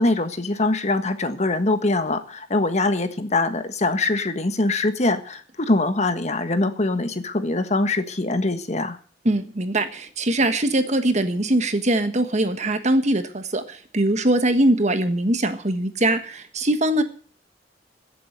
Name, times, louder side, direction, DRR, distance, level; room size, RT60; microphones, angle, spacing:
voice 1, 0.0-9.0, left 2 dB, 40° left, 9 dB, 1.4 m, -23 dB
voice 2, 9.2-17.0, right 1 dB, 40° right, 9 dB, 1.4 m, -22 dB
15.0 x 7.8 x 7.9 m, 0.42 s
head